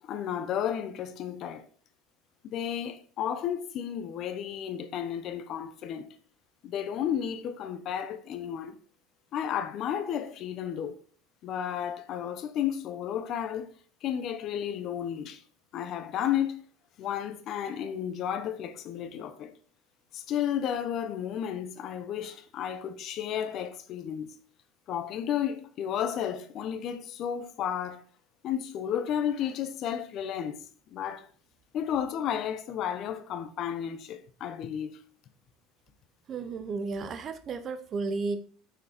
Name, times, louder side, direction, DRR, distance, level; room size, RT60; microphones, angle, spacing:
voice 1, 0.0-1.7 2.4-6.1 6.6-8.8 9.3-10.9 11.4-13.7 14.0-15.4 15.7-16.6 17.0-19.6 20.1-24.3 24.9-28.0 28.4-31.3 31.7-35.0, left 9 dB, 45° left, 0.9 m, -32 dB
voice 2, 36.3-38.4, right 4 dB, 35° right, 0.9 m, -33 dB
6.8 x 6.3 x 4.2 m
supercardioid pair, 130°, 0 cm